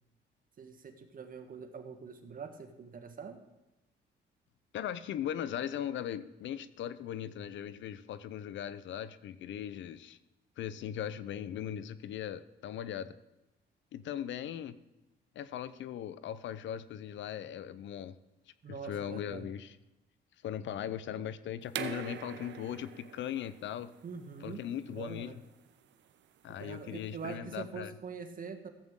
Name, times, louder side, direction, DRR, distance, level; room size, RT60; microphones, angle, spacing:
voice 1, 0.6-3.4 18.6-19.5 24.0-24.6 24.9-25.4 26.6-28.7, right 5 dB, 45° right, 7 dB, 1.3 m, -44 dB
voice 2, 4.7-10.2 10.6-13.2 13.9-14.8 15.3-18.2 18.7-19.8 20.4-23.9 24.4-25.4 26.4-27.9, left 10 dB, 70° left, 15 dB, 0.6 m, -39 dB
sound 1, 21.7-27.3, right 9 dB, 65° right, 0.7 m, -45 dB
15.0 x 7.7 x 3.7 m, 0.97 s
cardioid pair, 90°, 20 cm